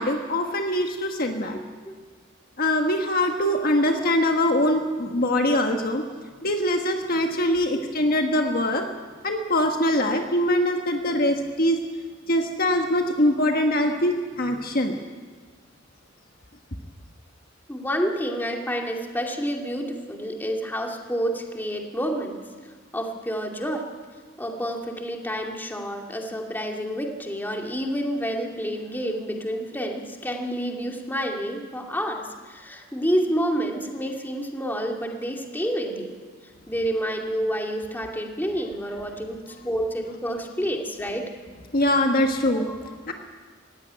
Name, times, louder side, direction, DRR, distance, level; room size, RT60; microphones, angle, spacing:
voice 1, 0.0-1.6 2.6-6.0 6.4-8.8 9.2-11.8 12.3-14.9 41.7-42.7 43.1-43.2, left 1 dB, 45° left, 4 dB, 1.5 m, -23 dB
voice 2, 1.5-1.9 3.9-4.1 7.7-7.8 17.7-22.4 22.9-23.8 24.4-36.2 36.7-41.3 42.5-42.9, equal, 10° left, 1 dB, 2.4 m, -29 dB
18.0 x 16.5 x 9.9 m, 1.6 s
head